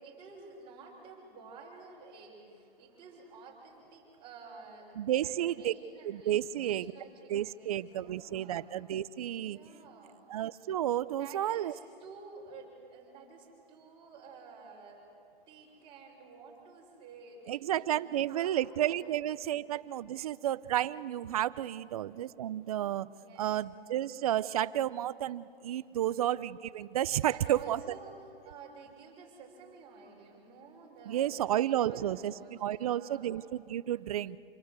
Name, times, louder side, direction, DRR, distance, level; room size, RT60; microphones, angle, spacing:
voice 1, 0.0-8.6 9.3-10.2 11.1-15.0 15.5-19.5 23.1-23.5 25.9-26.2 27.2-33.3, right 4 dB, 15° right, -3 dB, 6.0 m, -52 dB
voice 2, 5.0-5.7 6.0-6.9 7.3-9.6 10.3-11.7 17.5-23.1 23.4-27.8 31.1-34.4, right 12 dB, 40° right, 17 dB, 0.6 m, -32 dB
27.0 x 22.5 x 8.2 m, 2.5 s
hypercardioid pair, 155°, 30 cm